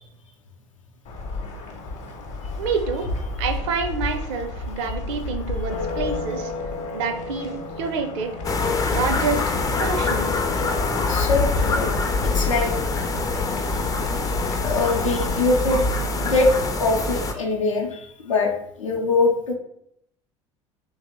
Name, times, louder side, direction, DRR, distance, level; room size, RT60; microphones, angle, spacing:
sound 1, 1.0-16.7, left 3 dB, 45° left, 0.8 m, -32 dB
voice 1, 2.6-3.0 3.4-6.5 6.9-8.3 8.9-10.3, right 5 dB, 65° right, 6 dB, 0.5 m, -27 dB
sound 2, 8.4-17.3, left 3 dB, 20° left, 0.4 m, -24 dB
voice 2, 11.1-11.9 12.2-12.7 14.6-15.8 16.2-16.5 16.8-18.5 18.8-19.5, left 3 dB, 85° left, 1 dB, 0.6 m, -22 dB
2.9 x 2.0 x 3.6 m, 0.72 s
figure-of-eight pair, 70°, 16 cm